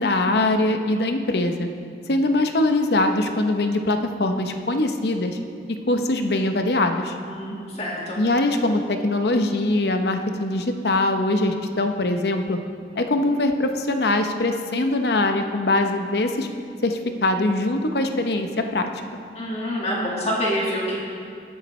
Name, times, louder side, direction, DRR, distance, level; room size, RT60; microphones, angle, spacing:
voice 1, 0.0-1.7 2.1-5.4 5.9-7.2 8.2-12.6 13.0-16.5 16.8-19.2, left 2 dB, 65° left, 5 dB, 0.8 m, -22 dB
voice 2, 7.2-8.2 19.4-21.0, equal, 35° left, -4 dB, 1.9 m, -26 dB
20.0 x 7.2 x 3.2 m, 2.4 s
head